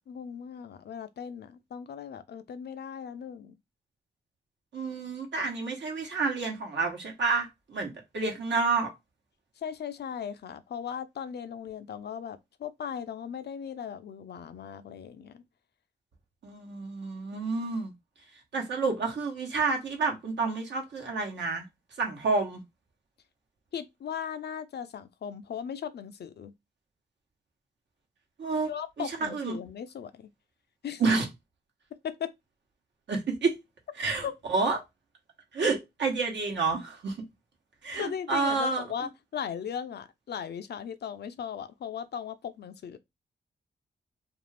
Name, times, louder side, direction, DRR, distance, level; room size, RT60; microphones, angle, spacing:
voice 1, 0.0-3.5 9.6-15.4 23.7-26.5 28.7-30.3 30.8-31.0 32.0-32.3 34.2-34.3 38.0-43.0, left 8 dB, 60° left, 0.4 m, -38 dB
voice 2, 4.7-8.9 16.4-17.9 18.5-21.6 22.0-22.6 28.4-28.7 29.0-29.6 31.0-31.3 33.1-33.6 34.0-34.8 35.5-37.2 37.8-38.8, right 4 dB, 75° right, 1.0 m, -29 dB
2.5 x 2.4 x 3.2 m
cardioid pair, 55°, 19 cm